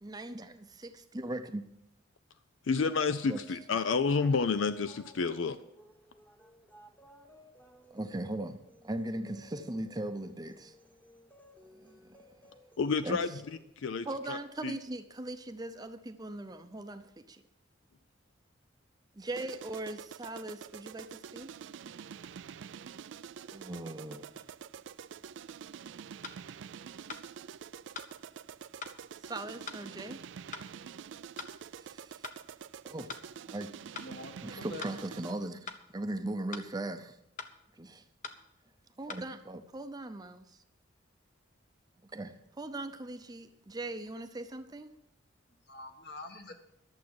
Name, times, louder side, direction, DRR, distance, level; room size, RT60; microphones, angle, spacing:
voice 1, 0.0-1.6 3.3-3.4 7.9-8.6 8.8-10.7 11.7-12.2 13.0-13.2 14.1-17.4 19.2-21.5 23.5-24.4 29.2-30.2 31.8-32.2 32.8-33.1 33.4-33.7 34.4-37.2 37.8-38.0 39.0-40.4 42.1-44.9, right 1 dB, 20° right, 9 dB, 0.6 m, -39 dB
voice 2, 2.7-5.6 12.8-13.4 13.8-14.7, left 4 dB, 70° left, 12 dB, 0.5 m, -30 dB
sound 1, 2.8-13.6, equal, 10° left, 1.1 m, -58 dB
sound 2, 19.4-35.5, right 7 dB, 65° right, 0.3 m, -47 dB
sound 3, 26.2-26.4 27.1-27.3 27.9-28.1 28.8-29.0 29.7-29.8 30.5-30.7 31.4-31.6 32.2-32.4 33.1-33.3 34.0-34.1 34.8-35.0 35.7-35.8 36.5-36.7 37.4-37.5 38.2-38.4 39.1-39.3, left 5 dB, 40° left, 0.9 m, -42 dB
voice 3, 34.0-35.1 45.7-46.5, left 2 dB, 55° left, 5 dB, 1.6 m, -46 dB
11.5 x 7.3 x 7.6 m, 0.83 s
head